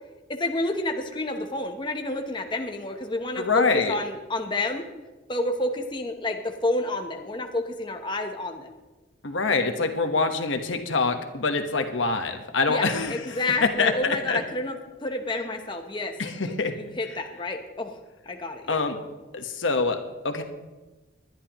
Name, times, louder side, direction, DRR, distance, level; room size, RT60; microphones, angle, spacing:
voice 1, 0.3-4.8 5.3-8.7 12.7-16.1 16.4-18.0 18.3-18.8, left 2 dB, 25° left, 4 dB, 0.9 m, -29 dB
voice 2, 3.4-3.9 9.2-13.1 13.6-14.4 16.2-16.8 18.7-19.0 19.3-20.4, left 4 dB, 80° left, 6 dB, 1.3 m, -25 dB
20.5 x 11.0 x 3.1 m, 1.2 s
head